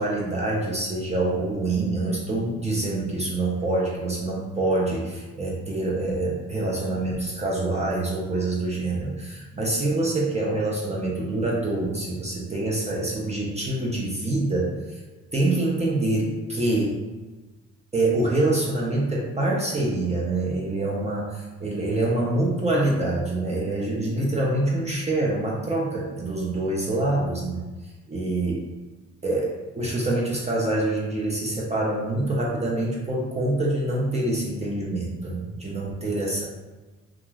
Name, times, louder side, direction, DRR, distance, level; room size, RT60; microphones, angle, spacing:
voice 1, 0.0-15.0 15.3-17.0 17.9-27.6 28.1-28.6 29.2-36.4, right 2 dB, 20° right, -4 dB, 0.6 m, -25 dB
2.4 x 2.3 x 3.1 m, 1.2 s
cardioid pair, 90°, 30 cm